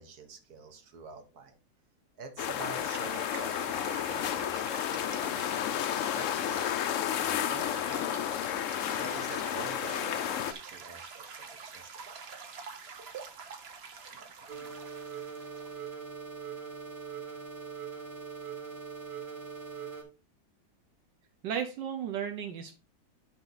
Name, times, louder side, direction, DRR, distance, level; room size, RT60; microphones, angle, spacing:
voice 1, 0.0-1.6 2.2-5.5 5.9-6.7 7.2-8.1 8.9-12.2 14.1-14.7, right 4 dB, 60° right, 5 dB, 1.8 m, -47 dB
sound 1, 2.4-10.5, left 10 dB, 85° left, 0.6 m, -32 dB
sound 2, 2.7-16.0, right 5 dB, 45° right, 0.9 m, -46 dB
sound 3, 14.5-20.0, right 6 dB, 30° right, 2.3 m, -41 dB
voice 2, 21.4-22.8, right 8 dB, 80° right, 5 dB, 1.6 m, -34 dB
11.5 x 3.8 x 4.0 m, 0.31 s
omnidirectional pair, 1.9 m